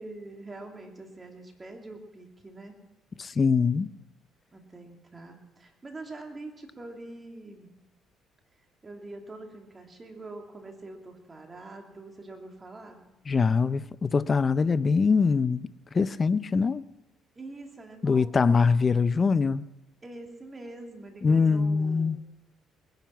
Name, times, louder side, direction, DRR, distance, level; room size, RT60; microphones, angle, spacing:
voice 1, 0.0-2.8 4.5-7.7 8.8-13.0 17.3-18.6 20.0-22.3, right 2 dB, 25° right, 2.7 m, -44 dB
voice 2, 3.2-3.9 13.3-15.7 15.9-16.8 18.0-19.6 21.2-22.2, left 5 dB, 35° left, 0.5 m, -23 dB
20.5 x 10.5 x 5.8 m
cardioid pair, 95°, 0 cm